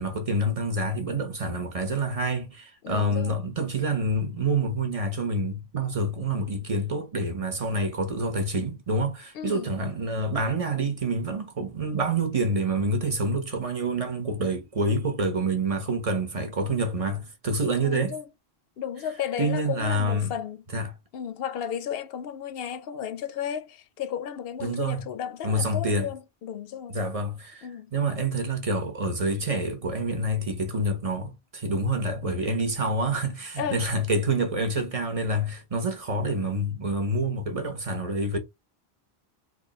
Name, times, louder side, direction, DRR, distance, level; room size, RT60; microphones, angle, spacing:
voice 1, 0.0-18.2 19.4-20.3 20.7-20.9 24.6-25.0 25.4-26.1 26.9-38.4, right 1 dB, 35° right, 0.9 m, -27 dB
voice 2, 2.8-3.4 9.3-9.7 17.8-18.3 18.8-20.6 21.1-27.0 27.6-27.9 33.6-33.9, left 9 dB, 70° left, 0.7 m, -34 dB
2.9 x 2.8 x 4.0 m
omnidirectional pair, 1.0 m